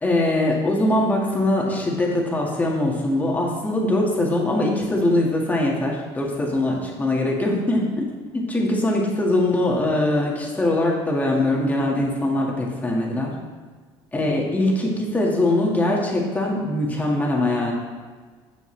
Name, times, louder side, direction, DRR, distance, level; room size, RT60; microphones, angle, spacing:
voice 1, 0.0-8.0 8.3-13.3 14.1-17.7, left 1 dB, 15° left, -2 dB, 1.9 m, -22 dB
15.5 x 5.3 x 3.3 m, 1.5 s
cardioid pair, 125°, 11 cm